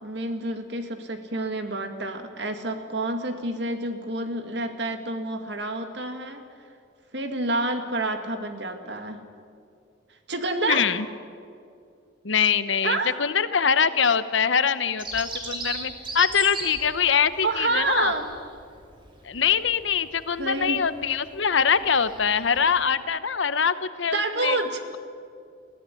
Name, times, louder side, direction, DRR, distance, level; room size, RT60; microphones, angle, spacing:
voice 1, 0.0-6.4 7.1-9.2 10.3-10.9 12.8-13.2 17.4-18.3 20.4-20.8 24.1-25.0, right 2 dB, 60° right, 7 dB, 2.1 m, -28 dB
voice 2, 10.7-11.1 12.2-18.1 19.2-24.6, left 6 dB, 75° left, 13 dB, 0.9 m, -23 dB
Bird vocalization bird call bird song, 15.0-22.8, right 2 dB, 25° right, 3.0 m, -38 dB
21.5 x 15.5 x 9.8 m, 2.3 s
head